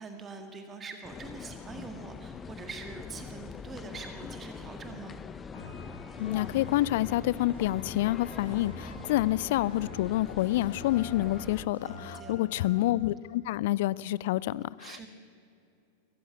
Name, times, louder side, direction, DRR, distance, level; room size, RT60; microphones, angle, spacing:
voice 1, 0.0-5.2 11.8-12.5 14.8-15.1, right 4 dB, 20° right, 6 dB, 1.8 m, -44 dB
sound 1, 1.0-11.7, left 6 dB, 20° left, 0.7 m, -43 dB
sound 2, 5.5-12.7, left 3 dB, 70° left, 6.5 m, -46 dB
voice 2, 6.2-15.1, left 16 dB, 50° left, 21 dB, 0.4 m, -28 dB
22.0 x 14.5 x 9.3 m, 2.7 s
figure-of-eight pair, 90°, 0 cm